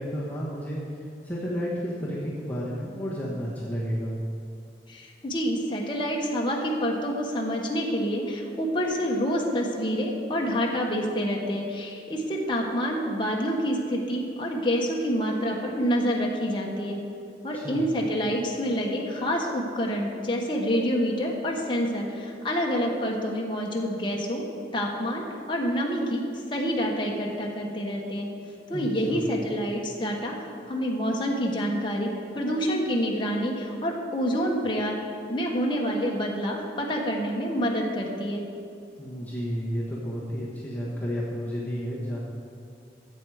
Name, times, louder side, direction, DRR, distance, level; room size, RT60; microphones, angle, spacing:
voice 1, 0.0-4.1 17.5-17.8 28.7-29.2 39.0-42.2, equal, 10° left, -7 dB, 1.3 m, -32 dB
voice 2, 4.9-17.0 17.4-24.4 24.7-26.2 26.5-28.3 28.7-30.4 30.7-35.0 35.3-38.4, equal, 25° left, -2 dB, 1.3 m, -27 dB
13.0 x 7.8 x 4.9 m, 2.4 s
head